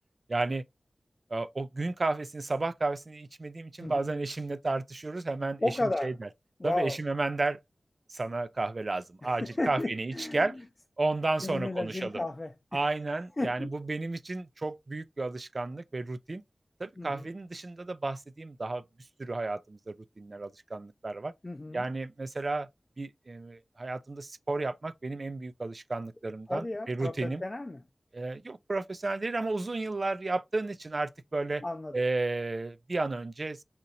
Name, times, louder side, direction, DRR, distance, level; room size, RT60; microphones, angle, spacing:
voice 1, 0.3-0.6 1.3-6.3 6.6-7.6 8.1-10.6 11.0-12.2 12.7-16.4 16.8-18.8 19.2-21.3 21.7-22.7 23.0-27.4 28.1-31.6 31.9-33.6, right 2 dB, 50° right, 0.3 m, -32 dB
voice 2, 3.8-4.1 5.6-6.1 6.6-7.0 9.2-10.6 11.4-12.9 13.4-13.7 17.0-17.3 21.4-21.9 26.5-27.8 31.6-32.0, left 2 dB, 35° left, 0.4 m, -33 dB
4.3 x 2.6 x 2.7 m
wide cardioid pair, 75°, 0 cm